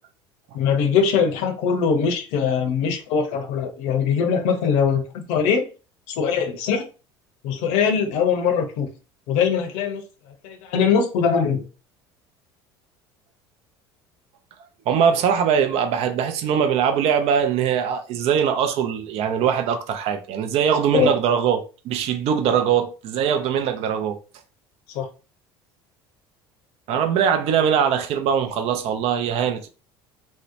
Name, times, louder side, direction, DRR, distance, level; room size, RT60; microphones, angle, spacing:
voice 1, 0.5-5.7 6.2-6.8 7.4-8.9 9.3-10.0 10.4-11.6 20.9-21.1 24.9-25.1, left 6 dB, 70° left, 0.7 m, -21 dB
voice 2, 14.9-24.2 26.9-29.7, right 8 dB, 55° right, 0.5 m, -21 dB
2.8 x 2.1 x 2.5 m
hypercardioid pair, 80°, 12 cm